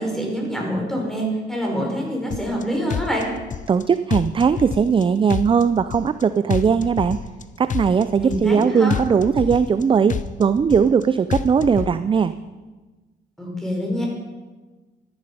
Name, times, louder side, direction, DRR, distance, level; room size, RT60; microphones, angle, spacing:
voice 1, 0.0-3.3 8.2-9.0 13.4-14.1, equal, ahead, -1 dB, 4.7 m, -25 dB
sound 1, 2.3-2.6 2.9-3.8 4.1-5.0 5.3-6.2 6.5-7.4 7.7-8.6 8.9-9.8 10.1-11.0 11.3-11.9, left 8 dB, 40° left, 0.6 m, -28 dB
voice 2, 3.7-7.2 7.6-12.3, right 6 dB, 25° right, 13 dB, 0.4 m, -19 dB
13.0 x 11.0 x 5.3 m, 1.2 s
cardioid pair, 90°, 20 cm